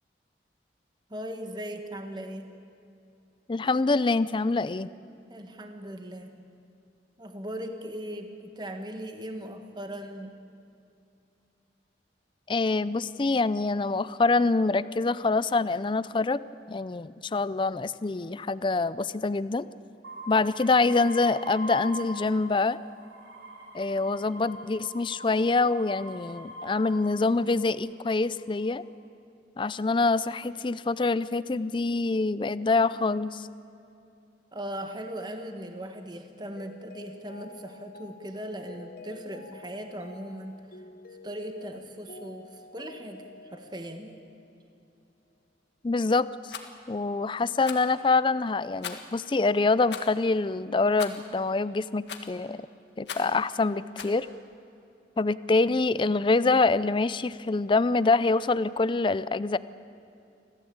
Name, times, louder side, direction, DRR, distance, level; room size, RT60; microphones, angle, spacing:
voice 1, 1.1-2.5 5.3-6.3 7.2-10.3 34.5-40.6 41.2-44.2, right 1 dB, 25° right, 5 dB, 1.5 m, -39 dB
voice 2, 3.5-4.9 12.5-16.4 16.7-19.7 20.3-22.8 23.7-28.8 29.6-33.5 45.8-46.5 46.9-52.6 53.0-54.3 55.2-59.6, left 3 dB, 30° left, 16 dB, 0.4 m, -25 dB
sound 1, 20.0-22.6 22.9-27.5 28.2-28.8, equal, 85° right, 3.7 m, -42 dB
Mallet percussion, 36.6-44.7, left 3 dB, 55° left, 1.0 m, -49 dB
Rattle, 46.5-46.7 47.6-47.9 48.8-49.2 49.9-50.1 51.0-51.3 52.1-52.4 53.0-53.4 54.0-54.2, left 6 dB, 75° left, 1.8 m, -39 dB
25.5 x 16.0 x 8.8 m, 2.6 s
head